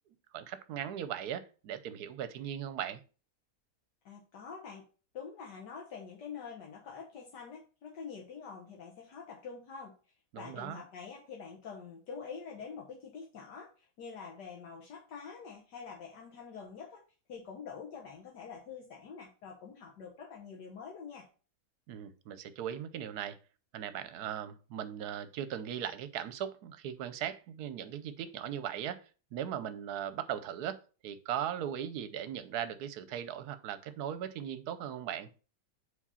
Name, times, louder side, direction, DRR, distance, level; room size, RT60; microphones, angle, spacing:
voice 1, 0.3-3.0 10.3-10.8 21.9-23.4 23.7-29.0 29.3-30.8 31.0-35.3, right 10 dB, 70° right, 1.2 m, -38 dB
voice 2, 4.0-4.8 5.1-9.9 10.4-17.0 17.3-21.3, left 6 dB, 80° left, 1.7 m, -46 dB
4.9 x 4.1 x 5.5 m
omnidirectional pair, 1.8 m